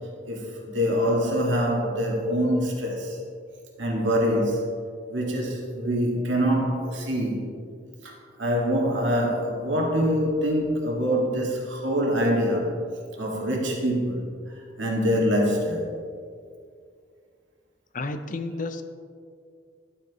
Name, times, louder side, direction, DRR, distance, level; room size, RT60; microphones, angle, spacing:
voice 1, 0.3-3.2 3.8-4.6 5.1-7.5 8.4-12.7 13.2-14.2 14.8-15.9, equal, 85° right, -2 dB, 1.9 m, -24 dB
voice 2, 17.9-18.8, left 2 dB, 45° left, 9 dB, 0.6 m, -31 dB
11.5 x 8.8 x 3.1 m, 2.2 s
head